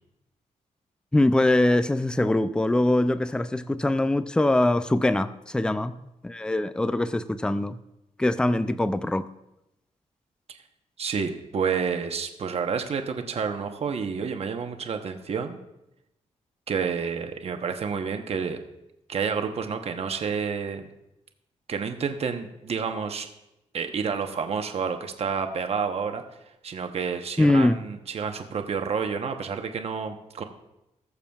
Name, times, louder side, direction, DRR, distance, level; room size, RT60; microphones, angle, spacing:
voice 1, 1.1-6.0 6.2-7.8 8.2-9.3 27.4-27.8, left 1 dB, 5° left, 0.3 m, -23 dB
voice 2, 11.0-15.6 16.7-18.6 19.1-20.9 21.7-23.3 23.7-26.2 26.6-30.4, right 6 dB, 55° right, 0.9 m, -29 dB
20.0 x 7.0 x 2.3 m
wide cardioid pair, 120°, 12 cm